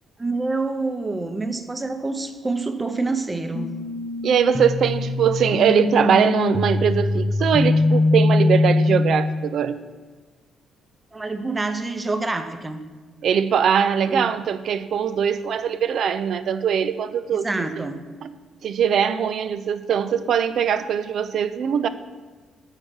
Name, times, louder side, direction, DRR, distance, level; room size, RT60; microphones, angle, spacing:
voice 1, 0.2-3.7 11.1-12.8 14.1-14.3 17.4-18.0, right 3 dB, 20° right, 8 dB, 0.7 m, -27 dB
sound 1, 3.5-9.5, left 2 dB, 30° left, 0.5 m, -22 dB
voice 2, 4.2-9.8 13.2-17.9 18.2-18.3 18.6-21.9, right 8 dB, 65° right, 12 dB, 0.4 m, -21 dB
6.5 x 4.8 x 6.2 m, 1.4 s
cardioid pair, 90°, 0 cm